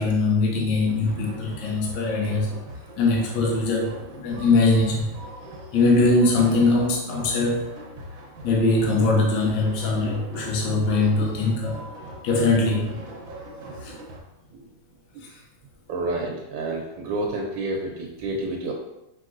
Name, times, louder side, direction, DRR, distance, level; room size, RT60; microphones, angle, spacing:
voice 1, 0.0-2.5 3.0-5.1 5.7-7.7 8.4-11.8 12.2-13.0 13.8-13.9 15.2-15.4, left 3 dB, 70° left, -2 dB, 1.5 m, -22 dB
sound 1, 0.9-14.2, right 1 dB, 55° right, 1.0 m, -41 dB
voice 2, 15.9-18.7, right 2 dB, 75° right, 0 dB, 1.3 m, -29 dB
4.8 x 3.6 x 2.5 m, 0.92 s
omnidirectional pair, 2.2 m